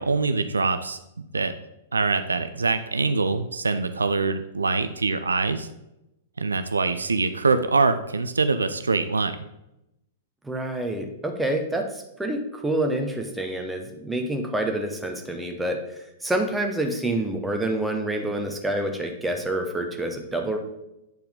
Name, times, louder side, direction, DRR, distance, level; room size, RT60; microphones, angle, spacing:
voice 1, 0.0-1.5 1.9-5.7 6.4-9.4, right 4 dB, 75° right, 10 dB, 0.4 m, -24 dB
voice 2, 10.4-20.6, right 1 dB, 5° right, 3 dB, 1.0 m, -27 dB
9.2 x 4.4 x 3.6 m, 0.87 s
figure-of-eight pair, 105°, 0 cm